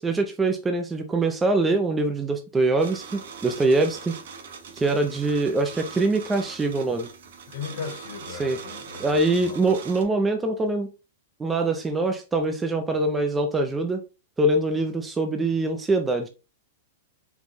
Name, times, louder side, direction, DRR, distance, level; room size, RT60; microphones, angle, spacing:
voice 1, 0.0-4.2 4.7-7.1 8.4-8.6 9.0-10.9 11.4-14.0 14.4-16.3, right 2 dB, 10° right, 0.3 m, -23 dB
sound 1, 2.8-10.0, right 6 dB, 60° right, 0.9 m, -41 dB
voice 2, 7.5-9.6, left 5 dB, 60° left, 1.1 m, -37 dB
4.5 x 2.2 x 3.9 m
supercardioid pair, 170°, 0 cm